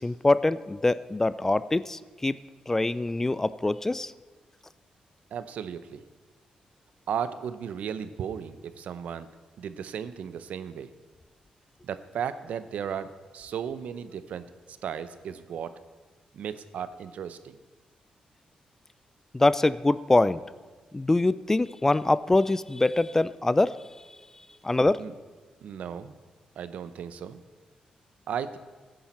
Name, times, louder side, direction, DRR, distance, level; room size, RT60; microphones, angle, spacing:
voice 1, 0.0-2.4 2.7-4.1 19.3-20.4 20.9-23.8 24.6-25.0, left 2 dB, 15° left, 17 dB, 0.3 m, -24 dB
voice 2, 5.3-6.0 7.1-9.3 9.6-10.9 11.8-15.8 16.3-17.6 25.0-25.1 25.6-26.1 26.6-27.4 28.3-28.6, right 8 dB, 75° right, 13 dB, 0.7 m, -35 dB
15.0 x 10.0 x 4.4 m, 1.3 s
cardioid pair, 95°, 2 cm